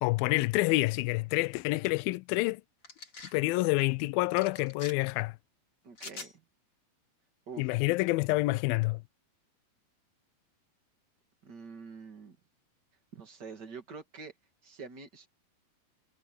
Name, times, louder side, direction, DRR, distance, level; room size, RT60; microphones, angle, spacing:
voice 1, 0.0-2.6 3.3-5.4 7.6-9.0, left 21 dB, 85° left, 2.1 m, -28 dB
sound 1, 2.8-3.4 4.4-4.9 6.0-6.3, left 3 dB, 35° left, 5.3 m, -44 dB
voice 2, 5.8-6.4 7.5-7.7 11.4-12.4 13.1-14.3 14.6-15.3, right 5 dB, 35° right, 1.9 m, -46 dB
omnidirectional pair, 4.7 m